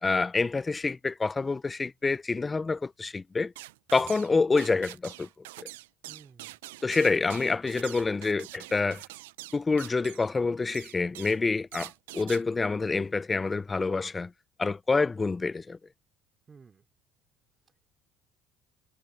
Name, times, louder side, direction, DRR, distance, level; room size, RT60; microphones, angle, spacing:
voice 1, 0.0-3.5 3.9-5.3 5.6-5.7 6.8-9.0 9.5-14.3 14.6-15.8, left 4 dB, 20° left, 0.4 m, -27 dB
sound 1, 3.6-4.3 4.6-10.3 10.7-11.4 11.7-12.4, right 18 dB, 90° right, 0.4 m, -45 dB
voice 2, 6.1-6.6 7.9-8.1 16.5-16.8, right 5 dB, 30° right, 2.7 m, -53 dB
supercardioid pair, 80°, 0 cm